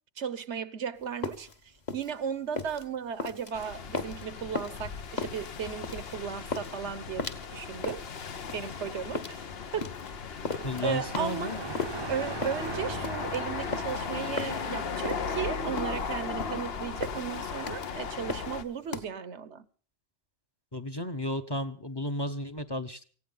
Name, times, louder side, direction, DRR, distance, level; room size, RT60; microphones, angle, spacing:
voice 1, 0.2-7.2 7.5-8.0 8.5-9.4 9.7-9.9 10.8-11.6 12.1-19.7, right 7 dB, 85° right, 1.3 m, -35 dB
sound 1, 1.0-19.0, left 4 dB, 40° left, 1.4 m, -37 dB
sound 2, 3.5-18.6, left 5 dB, 65° left, 1.2 m, -37 dB
sound 3, 10.4-15.3, right 4 dB, 30° right, 0.6 m, -41 dB
voice 2, 10.6-11.6 20.7-23.1, left 1 dB, 25° left, 0.9 m, -33 dB
18.0 x 16.0 x 4.0 m
omnidirectional pair, 1.1 m